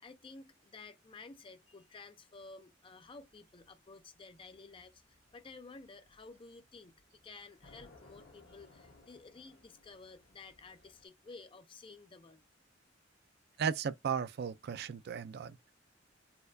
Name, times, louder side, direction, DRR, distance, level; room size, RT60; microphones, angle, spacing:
voice 1, 0.0-12.4, left 3 dB, 25° left, 0.4 m, -53 dB
sound 1, 3.0-11.1, left 2 dB, 75° left, 1.6 m, -63 dB
voice 2, 13.6-15.7, right 7 dB, 55° right, 0.3 m, -36 dB
4.2 x 2.2 x 2.5 m
head